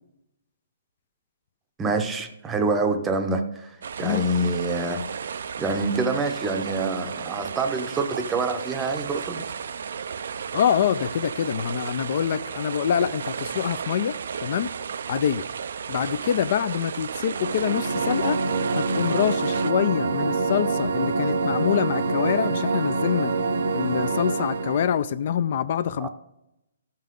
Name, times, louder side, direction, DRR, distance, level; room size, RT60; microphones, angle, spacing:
voice 1, 1.8-5.0 5.6-9.5 26.0-26.1, right 3 dB, 10° right, 7 dB, 0.6 m, -26 dB
sound 1, 3.8-19.7, right 6 dB, 65° right, 0.4 m, -34 dB
voice 2, 10.5-14.2 14.4-14.7 15.1-15.4 15.9-18.4 18.8-23.3 23.7-26.1, left 9 dB, 45° left, 14 dB, 0.3 m, -25 dB
sound 2, 17.2-25.0, right 4 dB, 85° right, 0.8 m, -26 dB
14.0 x 5.6 x 3.6 m, 0.87 s
hypercardioid pair, 165°, 0 cm